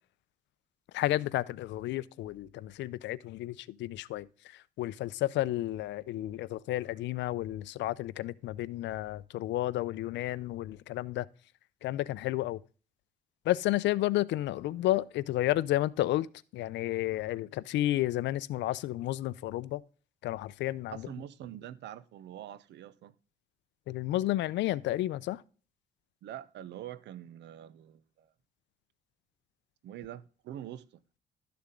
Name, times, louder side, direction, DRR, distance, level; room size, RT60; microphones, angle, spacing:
voice 1, 0.9-4.3 4.8-11.3 11.8-12.6 13.5-16.3 16.5-19.8 20.2-21.0 23.9-25.4, left 15 dB, 85° left, 0.6 m, -31 dB
voice 2, 20.9-23.1 26.2-28.3 29.8-30.8, right 11 dB, 75° right, 0.8 m, -44 dB
12.5 x 6.9 x 3.7 m
cardioid pair, 135°, 18 cm